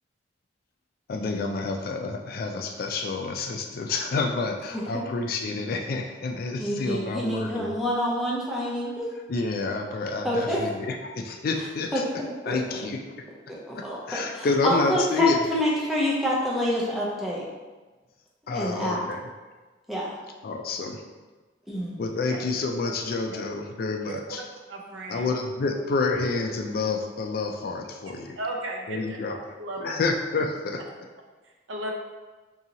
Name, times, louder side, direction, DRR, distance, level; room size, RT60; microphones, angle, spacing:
voice 1, 1.1-7.7 9.3-12.0 12.5-13.0 14.1-15.4 18.5-19.2 20.4-21.0 22.0-24.4 25.1-28.4 28.9-29.5 29.8-30.8, left 3 dB, 50° left, 3 dB, 0.3 m, -28 dB
voice 2, 6.6-9.1 10.2-10.6 11.6-11.7 11.9-12.8 13.5-17.4 18.4-19.0 19.9-20.2 21.7-22.0, equal, ahead, -6 dB, 0.6 m, -28 dB
voice 3, 24.1-24.4 24.7-25.3 25.6-25.7 28.4-30.0 31.7-31.9, right 2 dB, 75° right, 1 dB, 0.5 m, -35 dB
2.9 x 2.7 x 3.8 m, 1.3 s
head